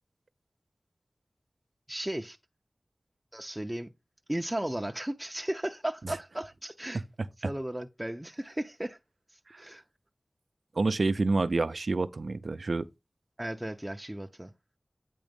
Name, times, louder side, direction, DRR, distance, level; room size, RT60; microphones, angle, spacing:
voice 1, 1.9-2.4 3.3-3.9 4.3-7.0 7.4-9.0 9.6-9.8 13.4-14.5, right 1 dB, 15° right, 0.6 m, -35 dB
voice 2, 10.8-12.9, right 3 dB, 75° right, 0.4 m, -28 dB
8.9 x 3.1 x 5.2 m
wide cardioid pair, 45°, 0 cm